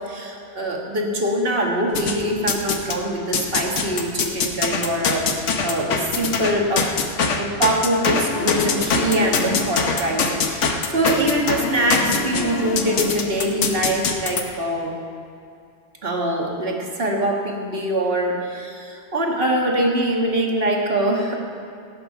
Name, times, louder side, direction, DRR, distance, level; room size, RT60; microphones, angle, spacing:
voice 1, 0.0-6.9 7.4-14.9 16.0-21.4, right 1 dB, 55° right, 0 dB, 1.8 m, -23 dB
sound 1, 1.9-3.0 3.3-14.4, left 4 dB, 90° left, 1.3 m, -23 dB
17.0 x 9.2 x 5.8 m, 2.4 s
omnidirectional pair, 1.2 m